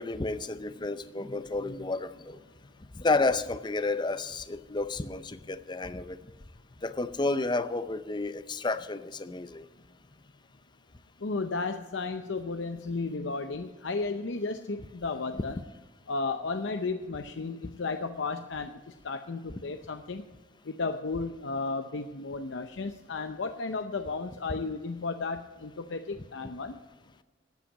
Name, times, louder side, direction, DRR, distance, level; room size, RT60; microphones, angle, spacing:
voice 1, 0.0-2.4 3.0-6.2 6.8-9.6, left 3 dB, 25° left, 0.6 m, -31 dB
voice 2, 11.2-15.6 16.1-18.8 19.0-20.2 20.7-26.8, left 3 dB, 75° left, 0.7 m, -34 dB
13.0 x 8.7 x 8.4 m
head